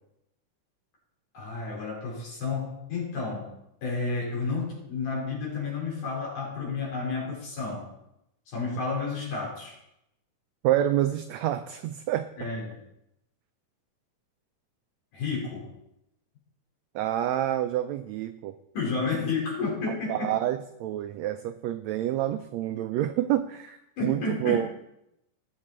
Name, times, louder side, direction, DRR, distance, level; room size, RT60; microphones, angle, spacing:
voice 1, 1.3-3.5 3.8-7.8 8.5-9.8 12.4-12.8 15.1-15.7 18.7-20.4 24.0-24.7, left 4 dB, 75° left, -4 dB, 6.2 m, -31 dB
voice 2, 10.6-12.5 16.9-18.5 20.1-24.7, right 12 dB, 85° right, 10 dB, 1.5 m, -28 dB
18.5 x 7.5 x 4.4 m, 0.84 s
omnidirectional pair, 3.7 m